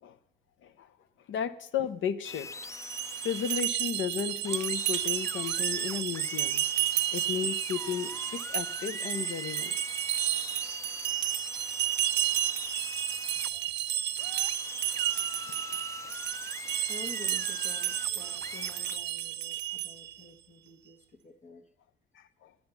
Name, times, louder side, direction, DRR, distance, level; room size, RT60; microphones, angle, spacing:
voice 1, 1.3-2.5 3.2-6.6 7.1-9.8 13.5-13.7 15.5-15.6 16.0-16.1 22.1-22.5, left 8 dB, 75° left, 13 dB, 0.7 m, -34 dB
sound 1, 2.2-19.0, left 3 dB, 15° left, 0.4 m, -42 dB
sound 2, 2.7-20.2, right 13 dB, 60° right, 0.5 m, -32 dB
voice 2, 16.9-21.0 21.2-21.6, left 4 dB, 40° left, 5 dB, 1.3 m, -48 dB
9.6 x 9.4 x 6.9 m, 0.76 s
cardioid pair, 90°, 20 cm